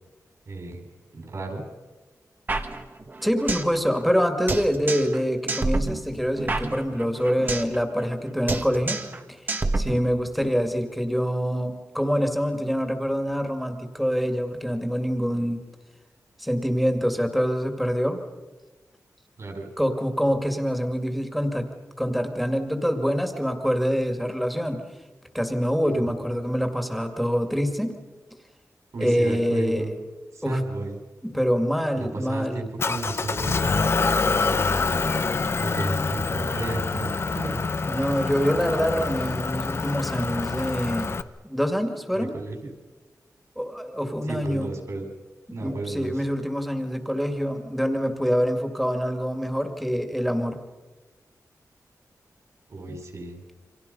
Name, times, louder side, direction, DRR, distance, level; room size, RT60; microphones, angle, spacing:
voice 1, 0.5-0.8 1.1-1.6 19.4-19.7 28.9-30.0 30.3-31.0 32.0-34.6 35.6-37.7 42.1-42.7 44.3-45.1 45.5-46.2 52.7-53.4, right 2 dB, 55° right, 4 dB, 5.4 m, -33 dB
sound 1, 2.5-3.8 4.0-4.1 4.5-5.2 5.5-7.8 8.0-8.2 8.5-9.2 9.5-10.5, right 2 dB, 30° right, 1.6 m, -28 dB
voice 2, 3.2-9.0 9.3-9.4 9.7-15.6 16.4-18.2 19.8-21.7 22.0-24.8 25.3-27.9 29.0-29.8 30.4-30.6 31.2-32.6 37.8-41.2 41.4-42.3 43.6-44.7 45.6-50.6 52.9-53.0, equal, ahead, 6 dB, 2.3 m, -25 dB
Motor vehicle (road) / Engine, 32.8-41.2, left 4 dB, 45° left, 0.9 m, -26 dB
29.5 x 26.0 x 5.5 m, 1.2 s
wide cardioid pair, 160°, 6 cm